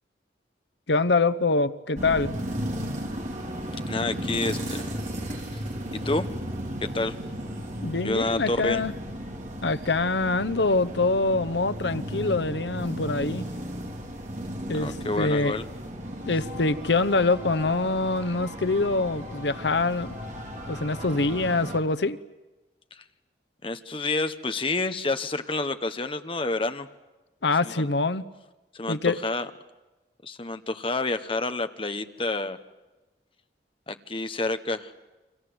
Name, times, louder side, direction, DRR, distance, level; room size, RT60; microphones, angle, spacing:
voice 1, 0.9-2.3 7.8-8.9 9.6-13.4 14.7-15.6 16.3-20.1 20.7-22.2 27.4-28.2 28.9-29.2, left 3 dB, 80° left, 13 dB, 1.0 m, -25 dB
sound 1, 2.0-21.8, equal, 45° right, 4.0 m, -35 dB
voice 2, 3.9-4.9 5.5-5.6 5.9-6.3 6.8-7.1 8.0-8.8 14.7-15.6 22.9-23.0 23.6-26.9 27.6-27.9 28.7-29.5 30.2-32.6 33.9-35.0, left 2 dB, 30° left, 9 dB, 1.2 m, -29 dB
29.0 x 25.5 x 8.0 m, 1.1 s
head